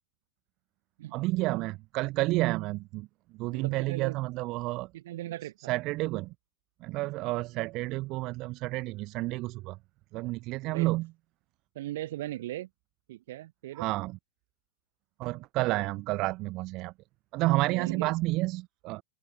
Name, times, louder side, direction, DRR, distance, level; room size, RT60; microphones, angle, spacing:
voice 1, 1.1-3.1 3.3-4.9 5.7-6.3 6.8-9.8 10.1-11.1 13.7-14.1 15.2-16.9 17.3-19.0, right 20 dB, 40° right, 0.4 m, -30 dB
voice 2, 3.5-4.2 4.9-5.7 10.7-10.9 11.7-12.7 13.1-13.9 17.7-18.1, right 15 dB, 55° right, 3.2 m, -38 dB
open air
figure-of-eight pair, 90°, 0 cm